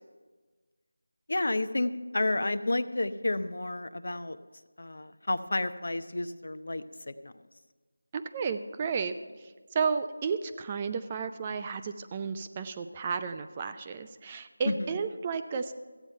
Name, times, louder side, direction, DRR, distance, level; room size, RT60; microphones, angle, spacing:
voice 1, 1.3-4.4 4.8-7.3 14.7-14.8, left 2 dB, 65° left, 12 dB, 0.6 m, -31 dB
voice 2, 8.1-9.2 9.7-15.7, right 5 dB, 20° right, 9 dB, 0.4 m, -32 dB
14.0 x 8.9 x 5.5 m, 1.4 s
figure-of-eight pair, 170°, 0 cm